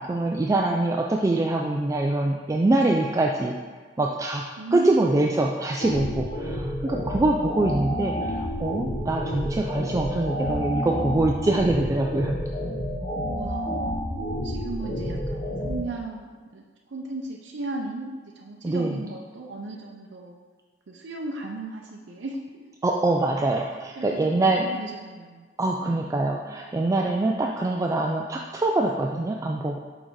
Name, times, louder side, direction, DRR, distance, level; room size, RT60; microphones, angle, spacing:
voice 1, 0.0-3.6 4.0-4.4 4.7-12.4 18.6-19.0 22.8-24.7 25.6-29.8, right 2 dB, 15° right, 0 dB, 0.3 m, -24 dB
voice 2, 4.6-4.9 13.3-16.6 16.9-20.4 20.9-22.4 24.0-25.5 25.8-26.1, right 2 dB, 75° right, 0 dB, 0.5 m, -36 dB
sound 1, 5.8-15.8, equal, 35° left, 0.9 m, -30 dB
6.2 x 3.9 x 4.6 m, 1.4 s
head